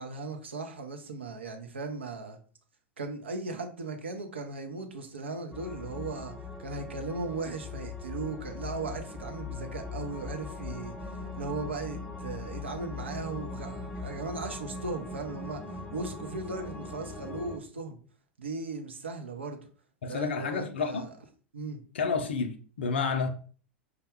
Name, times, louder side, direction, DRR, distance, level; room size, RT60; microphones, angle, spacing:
voice 1, 0.0-2.4 3.0-6.3 6.6-18.0 18.4-19.7 20.1-21.2 21.5-21.8, right 3 dB, 75° right, 0.6 m, -37 dB
sound 1, 5.5-17.6, left 3 dB, 10° left, 0.6 m, -40 dB
voice 2, 20.0-21.0 21.9-23.3, left 5 dB, 65° left, 0.5 m, -30 dB
4.7 x 2.2 x 3.4 m
figure-of-eight pair, 90°, 6 cm